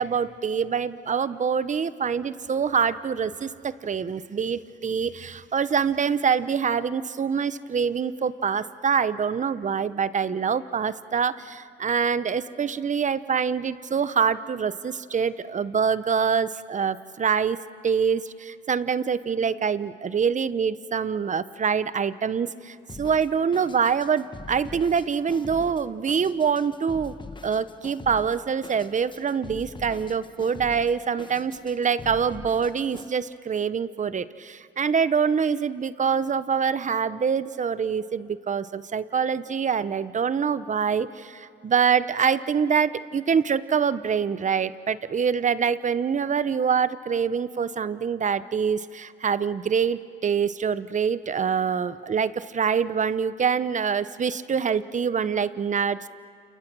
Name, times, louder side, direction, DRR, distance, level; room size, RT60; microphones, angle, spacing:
voice 1, 0.0-17.6 17.8-27.1 27.4-56.1, right 6 dB, 40° right, 15 dB, 0.9 m, -25 dB
Drum kit, 22.9-33.1, left 3 dB, 25° left, 1.2 m, -43 dB
29.5 x 29.0 x 6.2 m, 2.3 s
cardioid pair, 90°, 20 cm